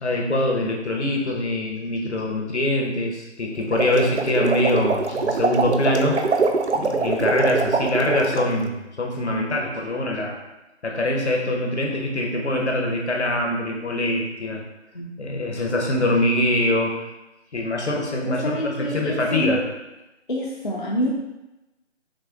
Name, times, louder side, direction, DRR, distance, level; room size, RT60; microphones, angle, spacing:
voice 1, 0.0-6.2 6.7-10.4 10.8-14.6 15.2-17.0 17.5-19.7, left 1 dB, 65° left, 0 dB, 0.8 m, -24 dB
sound 1, 3.6-8.5, right 4 dB, 65° right, 0.5 m, -23 dB
voice 2, 14.9-15.6 18.3-19.6 20.3-21.1, equal, 45° left, -3 dB, 0.5 m, -27 dB
6.0 x 2.2 x 2.3 m, 0.99 s
figure-of-eight pair, 155°, 36 cm